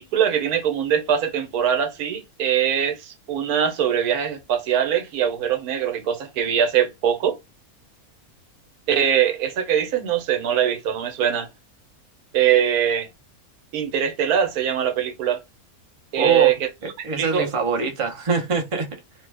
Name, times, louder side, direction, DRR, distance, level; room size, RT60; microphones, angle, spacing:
voice 1, 0.0-7.4 8.9-11.5 12.3-13.1 13.7-15.4 16.1-16.7 17.0-17.5, right 9 dB, 80° right, 1.2 m, -22 dB
voice 2, 16.2-16.6 17.0-18.9, right 4 dB, 35° right, 0.5 m, -24 dB
3.1 x 2.2 x 3.2 m
omnidirectional pair, 1.5 m